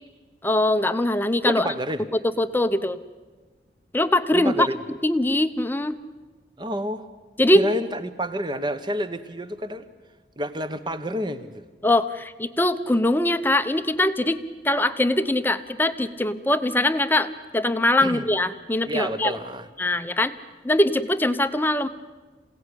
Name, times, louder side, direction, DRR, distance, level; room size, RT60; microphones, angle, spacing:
voice 1, 0.4-1.7 2.1-3.0 3.9-4.7 5.0-6.0 7.4-7.6 11.8-19.4 19.8-20.3 20.6-21.9, left 1 dB, 10° left, 10 dB, 0.9 m, -22 dB
voice 2, 1.4-2.0 4.3-4.8 6.6-7.1 7.5-9.8 10.4-11.6 18.0-18.2 18.8-19.7, equal, 25° right, 10 dB, 1.3 m, -29 dB
27.5 x 17.5 x 10.0 m, 1.3 s
head